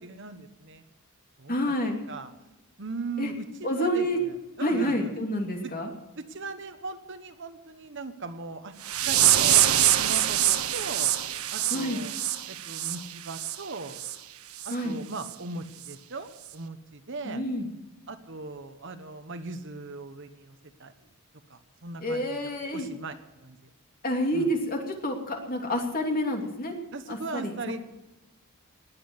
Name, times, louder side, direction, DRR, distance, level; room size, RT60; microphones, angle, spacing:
voice 1, 0.0-0.8 1.4-1.6 1.8-2.3 2.8-5.1 5.6-5.7 6.2-8.7 9.1-9.6 10.0-11.1 11.5-12.2 12.5-14.0 14.6-17.4 18.1-20.9 21.5-23.2 23.4-23.7 24.3-24.5 26.9-27.8, right 3 dB, 55° right, 9 dB, 1.2 m, -39 dB
voice 2, 1.5-1.9 3.2-3.3 3.6-4.2 4.6-5.9 11.7-12.0 14.7-15.0 17.2-17.7 22.0-22.9 24.0-26.7 27.1-27.5, equal, 40° left, 2 dB, 2.8 m, -28 dB
sound 1, 8.8-13.6 13.9-14.2 14.6-14.7 15.2-15.3 15.8-15.9, right 12 dB, 80° right, 1.0 m, -24 dB
20.0 x 8.7 x 8.0 m, 1.0 s
head